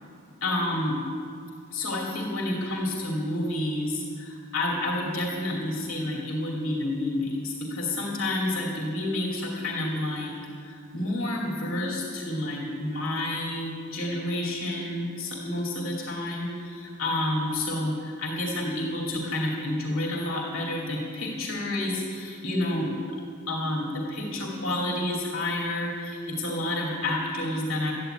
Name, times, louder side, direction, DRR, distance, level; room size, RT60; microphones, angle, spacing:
voice 1, 0.4-1.0 1.7-10.3 10.6-22.9 23.5-27.9, left 1 dB, 65° left, -2 dB, 2.6 m, -29 dB
13.5 x 10.0 x 9.0 m, 2.3 s
head